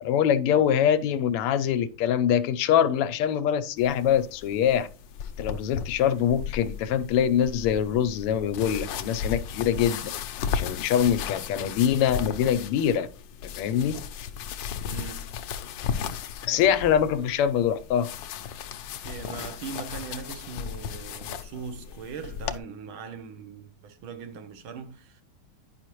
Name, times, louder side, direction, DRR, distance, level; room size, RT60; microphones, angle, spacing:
voice 1, 0.0-4.9 5.4-13.1 13.6-14.0 16.4-18.1, left 9 dB, 90° left, 1.6 m, -24 dB
sound 1, 3.8-22.6, left 7 dB, 70° left, 1.1 m, -35 dB
voice 2, 14.8-15.4 19.0-25.2, right 6 dB, 70° right, 1.6 m, -40 dB
9.7 x 5.7 x 3.0 m
omnidirectional pair, 2.4 m